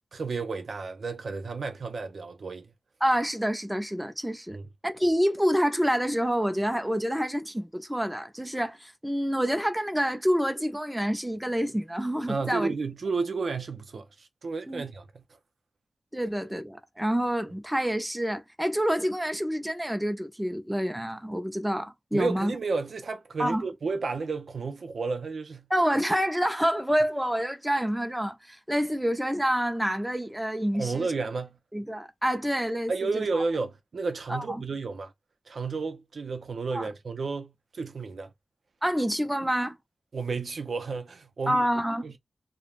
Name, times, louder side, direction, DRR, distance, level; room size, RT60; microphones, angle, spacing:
voice 1, 0.1-2.7 4.5-4.7 12.3-15.2 22.1-25.7 30.7-31.6 32.9-35.1 35.5-38.3 40.1-41.7 42.0-42.2, right 4 dB, 70° right, 0.4 m, -32 dB
voice 2, 3.0-4.6 4.8-12.7 14.7-14.8 16.1-22.5 23.4-23.6 25.7-31.1 31.7-33.4 34.3-34.6 36.7-36.9 38.8-39.8 41.5-42.1, equal, 5° right, 0.4 m, -27 dB
2.3 x 2.0 x 3.0 m
wide cardioid pair, 125°, 0 cm